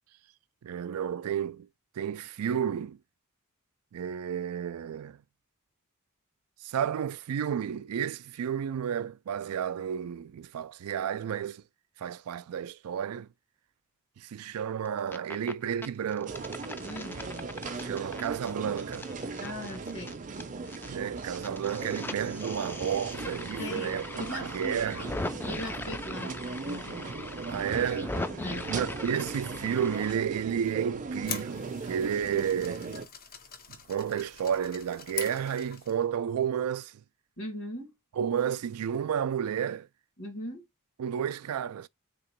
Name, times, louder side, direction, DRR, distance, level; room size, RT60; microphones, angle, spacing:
voice 1, 0.6-1.7 2.0-3.0 3.9-5.2 6.6-11.6 12.0-13.3 14.2-16.5 17.8-19.1 20.9-24.0 24.3-25.1 27.5-28.2 28.7-33.0 33.7-37.0 38.2-39.9 41.0-41.9, right 8 dB, 80° right, 0.3 m, -31 dB
sound 1, 14.9-15.5 15.8-20.9 21.2-30.1, left 2 dB, 10° left, 0.3 m, -40 dB
sound 2, 16.3-33.1, right 3 dB, 35° right, 0.6 m, -38 dB
voice 2, 16.8-17.2 19.4-20.2 23.6-25.1 25.4-26.4 26.6-27.1 28.4-28.7 37.4-37.9 40.2-40.6, left 1 dB, 70° left, 1.8 m, -39 dB
sound 3, 30.9-36.0, left 7 dB, 45° left, 0.8 m, -43 dB
3.6 x 3.0 x 4.4 m
head